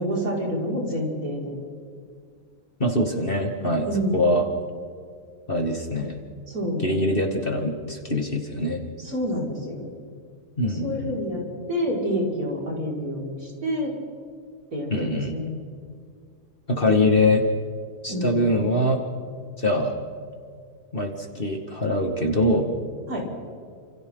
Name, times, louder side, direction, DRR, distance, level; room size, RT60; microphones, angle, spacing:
voice 1, 0.0-1.6 3.9-4.2 6.5-6.9 9.0-9.9 10.6-11.4 11.7-13.9 14.7-15.5 16.9-17.0 18.1-18.4 23.1-23.2, equal, 60° right, -4 dB, 6.2 m, -28 dB
voice 2, 2.8-4.4 5.5-6.2 6.8-8.8 10.6-11.1 14.9-15.3 16.7-17.4 18.0-19.0 19.6-19.9 20.9-22.7, left 1 dB, 35° left, 2 dB, 2.2 m, -23 dB
30.0 x 28.0 x 4.0 m, 2.1 s
omnidirectional pair, 1.7 m